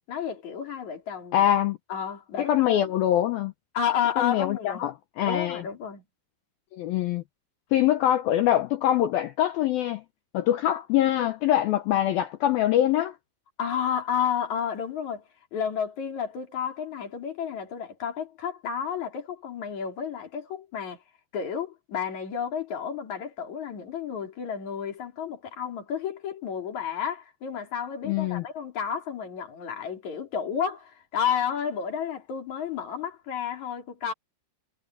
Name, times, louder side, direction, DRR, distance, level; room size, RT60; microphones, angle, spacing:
voice 1, 0.1-1.4 1.9-2.8 3.7-4.9 5.2-6.0 13.6-15.2 15.5-21.0 21.3-34.1, left 8 dB, 40° left, 4.7 m, -31 dB
voice 2, 1.3-1.8 2.4-3.5 4.2-5.6 6.7-7.2 7.7-10.0 10.3-13.2 28.0-28.4, left 12 dB, 80° left, 2.1 m, -24 dB
omnidirectional pair, 5.4 m